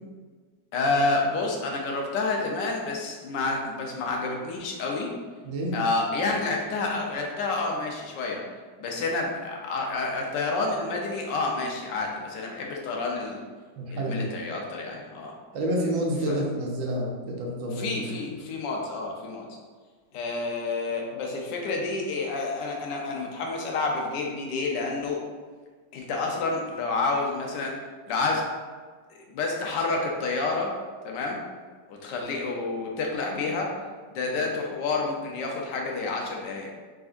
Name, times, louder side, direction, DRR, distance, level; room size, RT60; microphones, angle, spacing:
voice 1, 0.7-5.1 5.7-8.4 8.8-13.4 13.9-15.3 16.3-16.4 17.8-19.5 20.1-25.2 25.9-27.8 28.1-28.5 29.3-30.7 31.0-31.4 31.9-33.8 34.1-36.7, left 3 dB, 70° left, 0 dB, 1.3 m, -29 dB
voice 2, 5.4-5.8 13.8-14.3 15.5-18.2, right 1 dB, 85° right, -1 dB, 1.6 m, -29 dB
4.8 x 3.9 x 2.5 m, 1.5 s
omnidirectional pair, 2.2 m